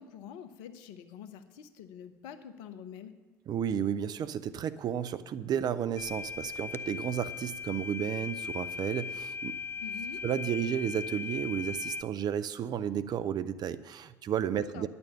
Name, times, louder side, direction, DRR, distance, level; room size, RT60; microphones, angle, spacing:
voice 1, 0.0-3.2 9.8-10.2 14.7-14.9, left 8 dB, 70° left, 11 dB, 0.9 m, -46 dB
voice 2, 3.5-9.6 10.2-14.9, right 9 dB, 50° right, 15 dB, 0.6 m, -32 dB
sound 1, 6.0-12.0, left 5 dB, 25° left, 0.5 m, -38 dB
10.0 x 7.0 x 8.6 m, 1.3 s
hypercardioid pair, 55°, 9 cm